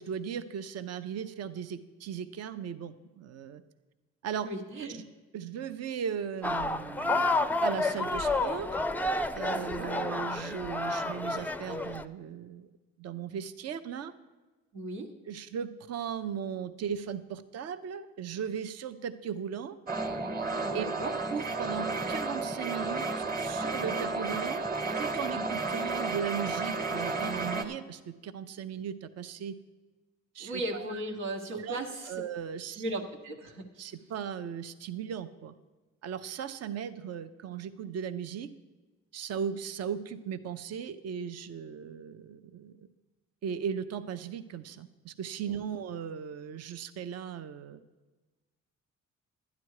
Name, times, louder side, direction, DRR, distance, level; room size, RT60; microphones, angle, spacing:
voice 1, 0.0-3.6 4.2-4.5 5.3-8.7 9.3-12.7 13.0-14.1 15.3-19.7 20.7-20.8 21.3-29.6 30.3-31.0 31.5-32.8 33.8-35.5 36.0-38.5 39.1-42.9 43.4-47.8, right 8 dB, 55° right, 11 dB, 0.6 m, -37 dB
voice 2, 4.4-5.0 9.5-9.9 14.7-15.1 20.6-21.1 30.4-32.1 32.8-33.9 45.5-45.6, right 1 dB, 90° right, 0 dB, 1.3 m, -37 dB
sound 1, 6.4-12.0, left 2 dB, 5° left, 0.4 m, -30 dB
sound 2, 19.9-27.6, right 3 dB, 30° right, 1.2 m, -32 dB
12.0 x 9.4 x 4.8 m, 1.2 s
cardioid pair, 90°, 30 cm